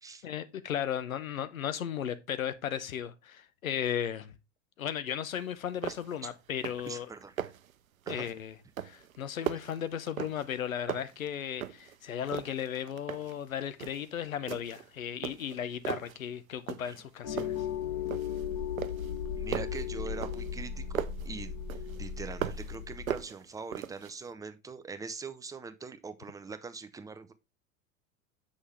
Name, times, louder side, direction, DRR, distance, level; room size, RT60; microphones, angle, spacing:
voice 1, 0.2-4.3 4.8-7.1 8.1-8.6 8.8-17.7, left 9 dB, 75° left, 0.8 m, -35 dB
sound 1, 5.4-5.5 5.8-6.2 6.5-6.9 7.2-7.7 8.1-8.4 8.8-10.6 10.9-12.0 12.3-13.4 13.8-14.1 14.5-14.9 15.2-16.2 16.7-17.1 17.4-18.4 18.8-21.3 21.7-22.8 23.1-24.1, right 10 dB, 75° right, 0.6 m, -38 dB
voice 2, 6.9-7.5 8.1-8.3 16.8-17.0 19.3-21.5 21.8-27.3, right 4 dB, 10° right, 0.5 m, -43 dB
sound 2, 17.2-23.2, left 8 dB, 55° left, 3.5 m, -36 dB
7.5 x 6.3 x 3.3 m
figure-of-eight pair, 80°, 41 cm